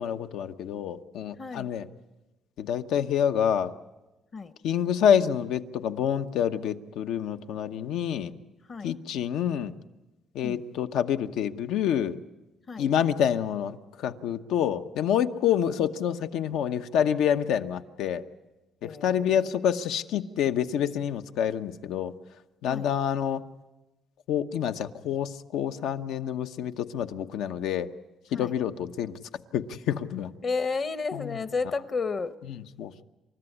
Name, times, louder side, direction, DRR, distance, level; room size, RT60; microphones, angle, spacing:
voice 1, 0.0-1.9 2.6-3.7 4.6-8.3 8.8-9.7 10.3-12.2 12.8-18.2 18.8-22.1 22.6-23.4 24.3-27.9 28.3-29.2 29.5-30.3 31.1-31.4 32.5-33.0, left 9 dB, 85° left, 1.0 m, -27 dB
voice 2, 1.4-1.7 4.3-4.5 8.7-8.9 10.4-10.6 12.7-12.9 15.8-15.9 18.8-19.5 22.7-22.9 28.3-28.6 30.4-32.3, left 4 dB, 35° left, 0.9 m, -32 dB
28.5 x 14.0 x 9.9 m
cardioid pair, 145°, 0 cm